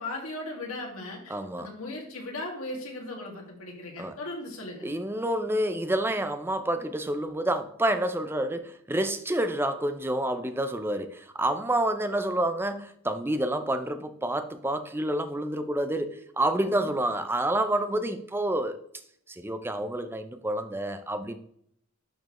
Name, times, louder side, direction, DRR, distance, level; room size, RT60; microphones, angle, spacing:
voice 1, 0.0-4.9 16.6-17.0, left 2 dB, 90° left, -1 dB, 2.2 m, -38 dB
voice 2, 1.3-1.7 4.0-4.2 4.8-18.8 19.3-21.4, right 1 dB, 10° right, 9 dB, 0.5 m, -28 dB
10.5 x 4.5 x 3.1 m, 0.68 s
head